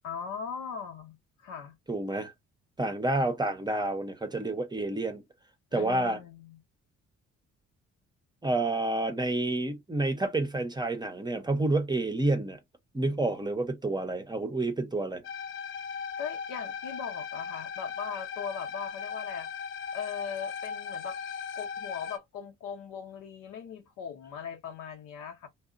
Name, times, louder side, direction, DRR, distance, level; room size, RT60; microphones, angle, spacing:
voice 1, 0.0-1.8 5.7-6.6 16.2-19.5 19.9-21.2 21.6-25.5, left 7 dB, 90° left, 0.8 m, -39 dB
voice 2, 1.9-2.3 2.8-5.2 5.7-6.2 8.4-12.6 12.9-15.2, right 2 dB, 15° right, 0.6 m, -29 dB
sound 1, 15.2-22.2, left 6 dB, 45° left, 0.4 m, -37 dB
2.7 x 2.1 x 2.4 m
cardioid pair, 90°, 30 cm